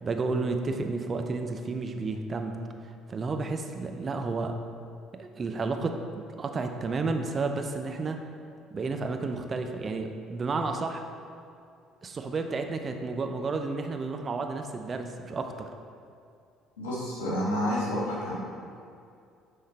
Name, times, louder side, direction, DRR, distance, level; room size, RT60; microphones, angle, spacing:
voice 1, 0.0-2.6 3.1-4.6 5.1-6.0 6.4-8.2 8.7-11.0 12.0-15.7, right 3 dB, 35° right, 5 dB, 0.7 m, -31 dB
voice 2, 16.8-18.3, equal, 85° left, -5 dB, 1.7 m, -29 dB
9.9 x 3.8 x 4.2 m, 2.4 s
hypercardioid pair, 55°, 0 cm